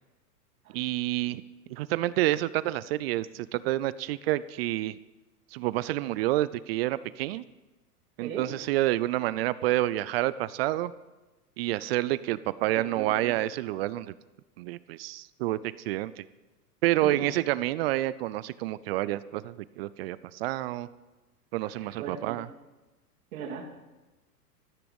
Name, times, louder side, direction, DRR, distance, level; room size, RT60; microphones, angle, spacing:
voice 1, 0.7-1.4 1.7-4.9 5.5-7.4 8.2-10.9 11.6-14.1 14.6-16.2 16.8-20.9 21.5-22.5, right 16 dB, 40° right, 17 dB, 0.5 m, -28 dB
voice 2, 13.0-13.3 17.0-17.2 21.8-22.4 23.3-23.7, right 6 dB, 60° right, 0 dB, 3.0 m, -38 dB
14.5 x 13.5 x 5.3 m, 1.1 s
hypercardioid pair, 105°, 47 cm